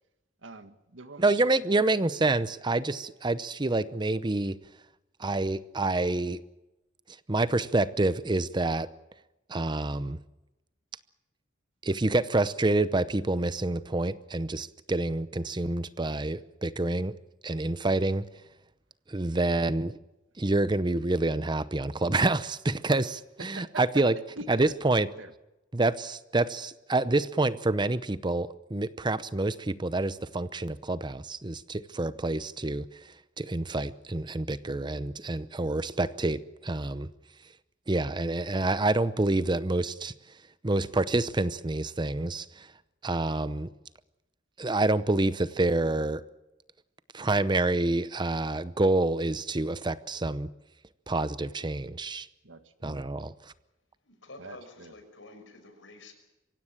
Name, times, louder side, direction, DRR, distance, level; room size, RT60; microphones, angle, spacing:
voice 1, 0.4-1.5 23.4-24.7 25.2-25.3 32.2-32.3 52.4-52.7 54.4-54.9, right 3 dB, 80° right, 9 dB, 1.7 m, -44 dB
voice 2, 1.2-4.6 5.2-6.4 7.3-8.9 9.5-10.2 11.8-17.1 17.4-18.2 19.1-19.9 20.4-24.1 24.5-25.1 25.7-32.9 33.4-37.1 37.9-40.1 40.6-42.7 43.0-43.7 44.6-46.2 47.1-50.5 51.1-52.3 52.8-53.3, right 2 dB, 25° right, 15 dB, 0.7 m, -27 dB
voice 3, 54.0-56.1, left 2 dB, 85° left, 7 dB, 5.8 m, -49 dB
24.5 x 16.5 x 8.9 m, 0.99 s
head